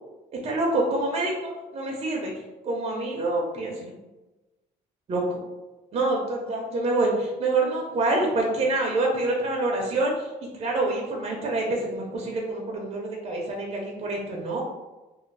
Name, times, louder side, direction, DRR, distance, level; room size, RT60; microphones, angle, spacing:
voice 1, 0.4-2.3 2.6-3.9 5.1-5.2 5.9-10.3 10.6-14.6, right 2 dB, 35° right, -1 dB, 0.5 m, -26 dB
2.5 x 2.0 x 3.1 m, 1.1 s
cardioid pair, 110°, 17 cm